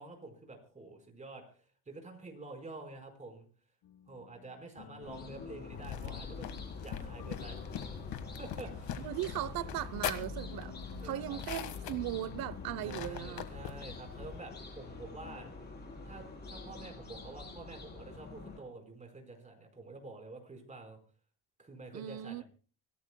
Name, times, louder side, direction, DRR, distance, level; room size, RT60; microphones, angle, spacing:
voice 1, 0.0-3.4 4.1-7.6 7.9-8.0 8.4-9.1 11.0-11.4 12.8-15.5 16.0-21.0 21.6-22.4, right 3 dB, 20° right, 4.8 m, -48 dB
sound 1, 3.8-13.2, left 9 dB, 60° left, 1.7 m, -52 dB
sound 2, 5.0-18.6, left 3 dB, 25° left, 4.6 m, -47 dB
sound 3, 5.7-14.4, left 9 dB, 80° left, 1.8 m, -42 dB
voice 2, 9.0-10.7 11.0-13.5 21.9-22.4, right 13 dB, 75° right, 0.9 m, -38 dB
25.0 x 17.5 x 2.3 m
cardioid pair, 150°, 36 cm